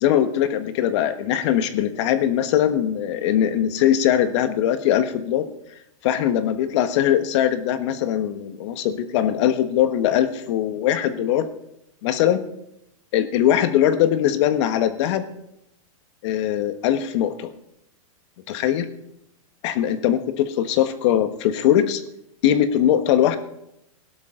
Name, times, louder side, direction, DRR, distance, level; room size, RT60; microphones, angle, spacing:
voice 1, 0.0-5.5 6.0-11.5 12.0-12.4 13.1-15.2 16.2-17.5 18.5-18.9 19.6-22.0 22.4-23.4, left 10 dB, 55° left, 10 dB, 1.4 m, -21 dB
17.0 x 11.5 x 3.8 m, 0.81 s
hypercardioid pair, 135°, 18 cm